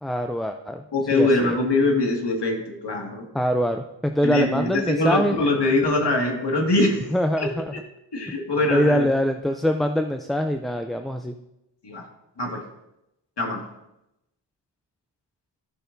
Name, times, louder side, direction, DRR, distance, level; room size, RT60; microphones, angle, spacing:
voice 1, 0.0-0.8 1.1-1.6 3.3-5.4 7.1-7.7 8.3-8.4 8.7-11.3, equal, ahead, 5 dB, 0.4 m, -24 dB
voice 2, 0.9-3.3 4.2-7.1 7.4-7.5 8.1-9.1 11.8-12.0 12.4-12.6 13.4-13.6, left 2 dB, 65° left, 1 dB, 2.1 m, -23 dB
14.0 x 6.8 x 2.6 m, 0.87 s
cardioid pair, 70°, 44 cm